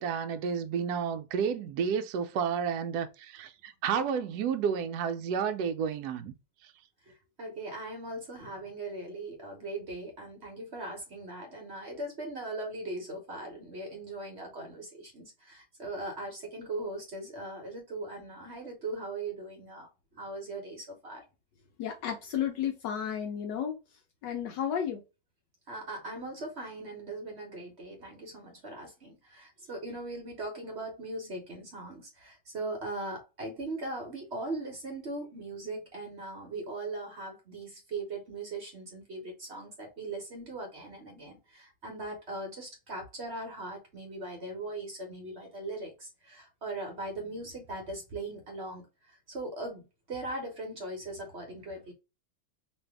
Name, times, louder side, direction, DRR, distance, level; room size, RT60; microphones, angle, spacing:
voice 1, 0.0-6.3, right 7 dB, 70° right, 1.0 m, -31 dB
voice 2, 7.0-21.2 25.7-51.9, right 2 dB, 45° right, 1.0 m, -39 dB
voice 3, 21.8-23.8 24.2-25.0, left 9 dB, 80° left, 1.3 m, -32 dB
3.2 x 2.6 x 3.3 m
omnidirectional pair, 1.9 m